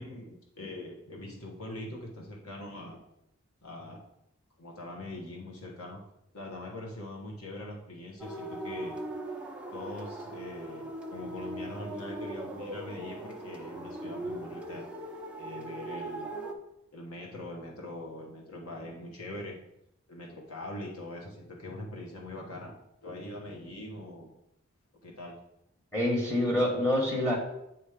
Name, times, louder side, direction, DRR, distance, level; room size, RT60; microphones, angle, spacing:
voice 1, 0.0-3.0 3.6-4.0 4.6-6.0 6.3-9.0 9.7-14.8 15.4-16.3 16.9-19.6 20.1-22.7 23.0-24.3 25.0-25.4, left 1 dB, 85° left, -1 dB, 1.2 m, -42 dB
sound 1, 8.2-16.5, right 1 dB, 5° right, 0.5 m, -39 dB
voice 2, 25.9-27.4, left 1 dB, 10° left, -2 dB, 1.3 m, -26 dB
9.0 x 3.1 x 5.0 m, 0.84 s
head